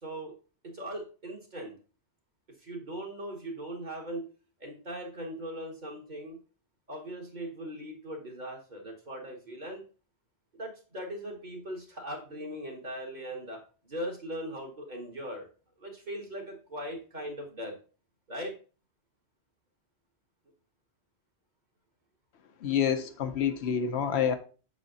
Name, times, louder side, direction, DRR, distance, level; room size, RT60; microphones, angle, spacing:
voice 1, 0.0-0.3 0.6-1.7 2.6-4.3 4.6-6.4 6.9-9.8 10.5-15.5 15.8-17.7 18.3-18.5, right 1 dB, 45° right, 1.7 m, -39 dB
voice 2, 22.6-24.4, left 8 dB, 75° left, 0.9 m, -27 dB
6.6 x 4.1 x 3.9 m
omnidirectional pair, 1.1 m